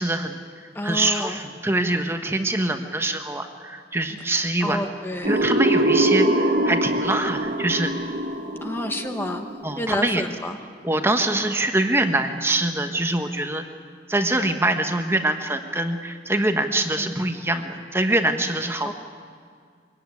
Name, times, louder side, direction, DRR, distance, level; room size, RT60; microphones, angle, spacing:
voice 1, 0.0-4.8 5.3-7.9 9.6-10.2 10.8-13.6 14.1-18.9, right 2 dB, 15° right, 6 dB, 1.1 m, -24 dB
voice 2, 0.7-1.4 4.6-5.4 8.6-9.5 9.8-10.6 17.0-17.1 18.8-18.9, left 1 dB, 10° left, 5 dB, 1.1 m, -29 dB
sound 1, 5.2-9.9, right 1 dB, 50° right, 1.3 m, -23 dB
23.5 x 17.0 x 9.7 m, 2.1 s
head